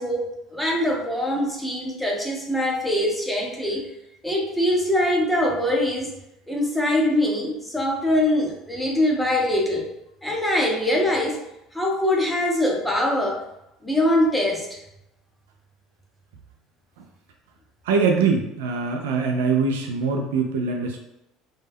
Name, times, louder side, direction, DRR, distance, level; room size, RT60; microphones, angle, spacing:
voice 1, 0.0-3.8 4.2-6.1 6.5-9.9 10.2-11.4 11.7-13.4 13.8-14.8, left 1 dB, 5° left, -1 dB, 0.6 m, -23 dB
voice 2, 17.9-21.0, right 5 dB, 90° right, 3 dB, 0.3 m, -23 dB
2.2 x 2.0 x 3.4 m, 0.87 s
supercardioid pair, 95°, 0 cm